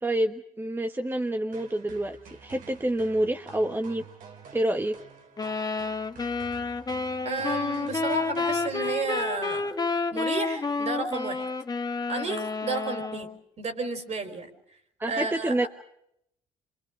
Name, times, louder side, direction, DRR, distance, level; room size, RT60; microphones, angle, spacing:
voice 1, 0.0-2.2 2.4-4.0 4.5-5.0 15.0-15.7, right 1 dB, 15° right, 5 dB, 1.3 m, -27 dB
sound 1, 1.5-9.7, right 6 dB, 70° right, 2.7 m, -49 dB
sound 2, 5.4-13.4, left 4 dB, 30° left, 1.4 m, -30 dB
voice 2, 7.2-9.7 10.1-11.4 12.1-13.3 13.6-14.5 15.1-15.7, right 3 dB, 50° right, 7 dB, 4.2 m, -32 dB
27.5 x 24.5 x 4.9 m, 0.73 s
cardioid pair, 85°, 14 cm